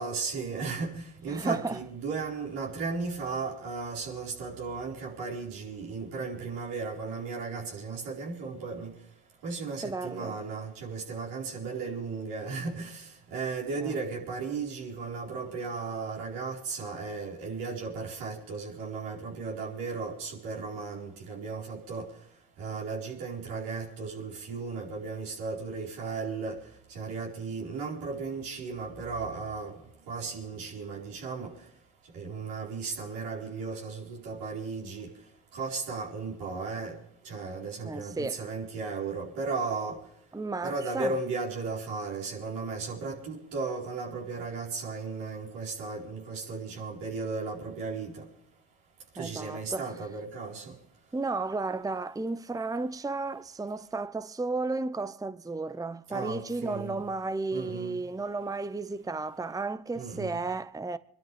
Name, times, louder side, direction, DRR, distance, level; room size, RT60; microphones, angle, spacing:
voice 1, 0.0-8.9 9.4-22.1 22.6-26.6 26.9-29.7 30.1-31.5 32.1-35.1 35.5-37.0 37.2-40.0 40.6-48.3 49.1-50.7 56.1-57.0 57.5-58.0 59.9-60.4, right 4 dB, 80° right, 4.6 m, -35 dB
voice 2, 1.3-1.8 9.8-10.4 13.8-13.9 37.8-38.4 40.3-41.1 49.2-49.9 51.1-61.0, right 3 dB, 10° right, 0.8 m, -33 dB
26.5 x 12.5 x 3.4 m
hypercardioid pair, 45°, 40 cm